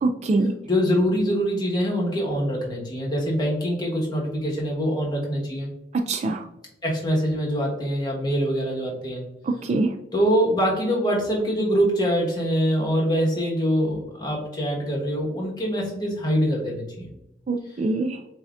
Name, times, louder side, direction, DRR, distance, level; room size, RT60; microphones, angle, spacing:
voice 1, 0.0-0.5 5.9-6.4 9.4-10.0 17.5-18.2, right 3 dB, 35° right, 4 dB, 0.3 m, -24 dB
voice 2, 0.7-5.7 6.8-9.2 10.1-17.1, equal, 25° left, -2 dB, 1.1 m, -24 dB
7.4 x 2.8 x 2.4 m, 0.89 s
head